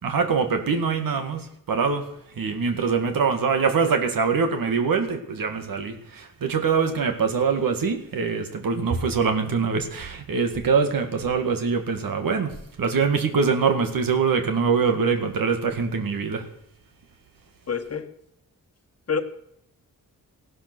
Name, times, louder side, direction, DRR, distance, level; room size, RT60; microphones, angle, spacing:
voice 1, 0.0-12.5 12.8-16.4, right 5 dB, 75° right, 6 dB, 2.1 m, -24 dB
voice 2, 17.7-18.1 19.1-19.2, left 6 dB, 45° left, 8 dB, 1.4 m, -26 dB
16.5 x 12.0 x 6.2 m, 0.76 s
wide cardioid pair, 130°, 34 cm